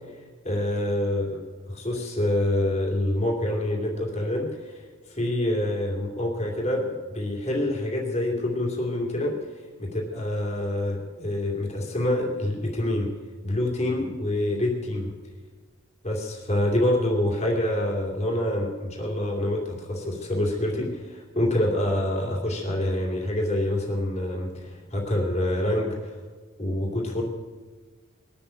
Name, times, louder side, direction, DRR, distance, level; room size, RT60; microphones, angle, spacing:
voice 1, 0.4-13.1 13.4-15.1 16.0-26.2 26.6-27.2, left 1 dB, 35° left, -1 dB, 2.7 m, -26 dB
21.0 x 7.0 x 9.1 m, 1.4 s
head